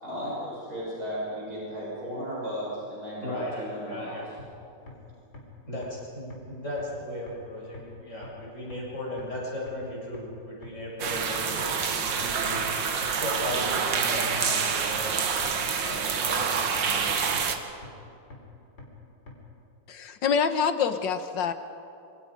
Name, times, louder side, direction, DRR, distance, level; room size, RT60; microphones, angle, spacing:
voice 1, 0.0-4.2, equal, 60° right, -7 dB, 7.8 m, -35 dB
voice 2, 3.2-4.3 5.6-12.7 13.2-15.2 15.8-17.5, left 1 dB, 40° left, -5 dB, 7.8 m, -37 dB
sound 1, 4.4-4.5 4.9-5.0 5.3-5.4 5.8-5.9 6.3-6.4 6.8-6.9 7.3-7.4 7.7-7.8 8.2-8.3 8.7-8.8 9.2-9.3 9.7-9.8 10.1-10.2 10.6-10.7 11.1-11.2 11.6-11.7 12.1-12.2 12.5-12.6 13.0-13.1 13.5-13.6 14.0-14.1 14.5-14.6 14.9-15.0 15.4-15.5 15.9-16.0 16.4-16.5 16.9-17.0 17.3-17.4 17.8-17.9 18.3-18.4 18.8-18.9 19.3-19.4, left 3 dB, 65° left, 4.8 m, -43 dB
sound 2, 11.0-17.6, right 6 dB, 85° right, 2.2 m, -27 dB
voice 3, 19.9-21.5, left 6 dB, 90° left, 9 dB, 1.9 m, -26 dB
26.5 x 26.0 x 5.2 m, 2.7 s
omnidirectional pair, 1.9 m